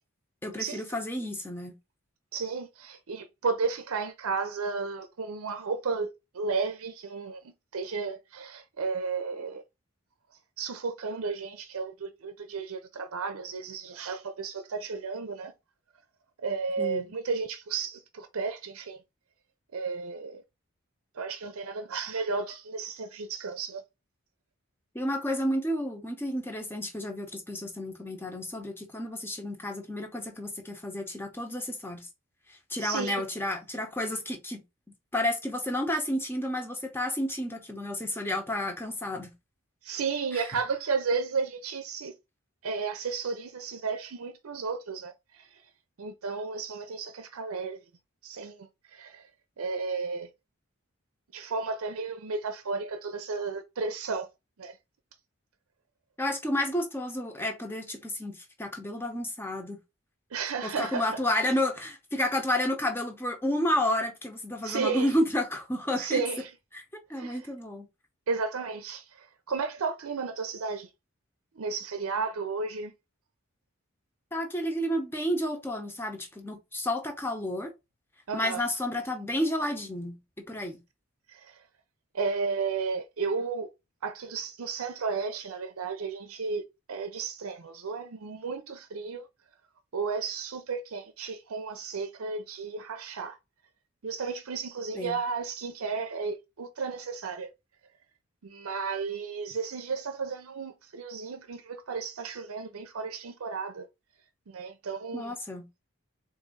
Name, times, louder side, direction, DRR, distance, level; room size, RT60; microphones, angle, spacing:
voice 1, 0.4-1.8 16.8-17.1 24.9-32.1 32.5-34.6 35.1-39.3 40.3-40.5 56.2-59.8 60.6-66.2 66.7-66.8 67.1-67.9 74.3-77.7 78.3-80.8 94.9-95.2 105.1-105.7, left 1 dB, 10° left, 0.8 m, -31 dB
voice 2, 2.3-9.6 10.6-15.5 16.4-19.0 19.7-20.4 21.2-23.8 32.8-33.2 39.8-42.1 42.6-45.5 46.0-47.8 48.2-49.3 49.6-50.3 51.3-54.3 54.6-54.7 60.3-61.1 64.6-65.1 66.0-66.5 67.1-67.4 68.3-70.9 71.6-72.9 78.3-78.6 81.3-81.6 82.1-83.7 84.0-86.6 86.9-89.3 89.9-93.4 94.0-97.5 98.4-103.9 104.5-105.3, right 4 dB, 85° right, 0.6 m, -33 dB
4.0 x 2.6 x 3.8 m
head